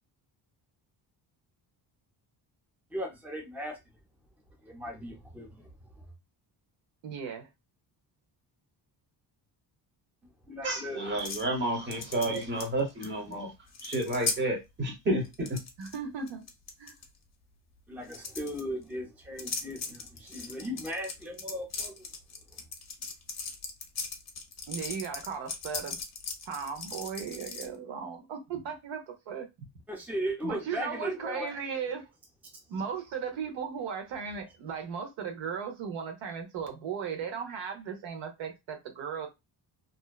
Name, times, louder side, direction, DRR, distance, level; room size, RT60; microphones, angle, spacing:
voice 1, 2.9-3.8 4.6-5.7 10.5-11.0 17.9-22.0 29.9-31.5, equal, 5° right, 0.6 m, -37 dB
voice 2, 7.0-7.5 15.8-16.5 16.8-16.9 24.7-26.0 26.5-29.5 30.4-32.1 32.7-39.3, right 6 dB, 85° right, 0.8 m, -36 dB
voice 3, 10.6-13.5 13.8-15.6, right 1 dB, 25° right, 0.9 m, -30 dB
sound 1, 11.2-11.5 11.9-13.0 13.3-13.4 13.7-14.4 15.2-16.0 16.3-17.0 18.0-18.6 19.4-27.7, left 4 dB, 35° left, 0.6 m, -38 dB
2.6 x 2.1 x 2.2 m
cardioid pair, 125°, 44 cm